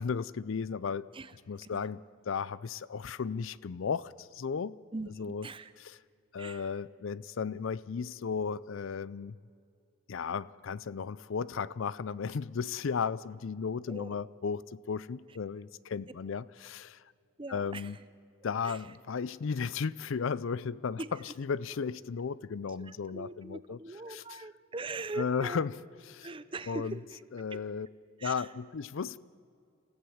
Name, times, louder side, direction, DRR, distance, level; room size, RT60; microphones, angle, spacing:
voice 1, 0.0-1.1 1.5-2.0 2.3-4.8 5.2-5.5 5.8-6.0 6.3-9.4 10.1-17.0 17.5-18.0 18.4-23.8 24.1-24.4 25.2-25.7 26.1-26.3 26.7-26.9 27.3-27.9 28.2-29.2, left 6 dB, 60° left, 0.4 m, -35 dB
voice 2, 4.9-5.7 6.4-6.7 13.9-14.1 17.4-17.9 18.6-18.9 21.0-21.3 22.8-25.6 26.2-27.2 27.5-27.7 28.2-28.5, right 2 dB, 25° right, 0.6 m, -41 dB
27.5 x 15.0 x 7.2 m
head